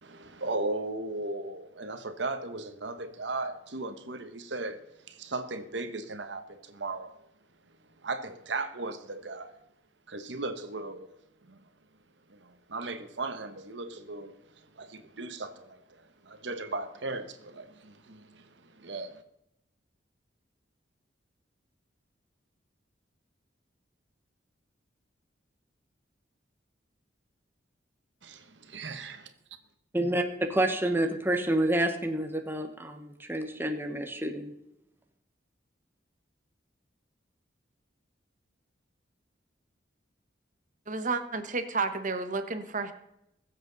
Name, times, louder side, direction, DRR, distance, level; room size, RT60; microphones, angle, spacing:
voice 1, 0.0-7.1 8.0-9.5 10.1-11.1 11.4-11.6 12.3-14.4 14.7-19.2 28.2-29.3, right 2 dB, 70° right, 1.1 m, -37 dB
voice 2, 29.9-34.5, right 1 dB, 10° right, 1.1 m, -28 dB
voice 3, 40.9-42.9, right 4 dB, 45° right, 1.1 m, -31 dB
21.0 x 7.8 x 4.0 m
head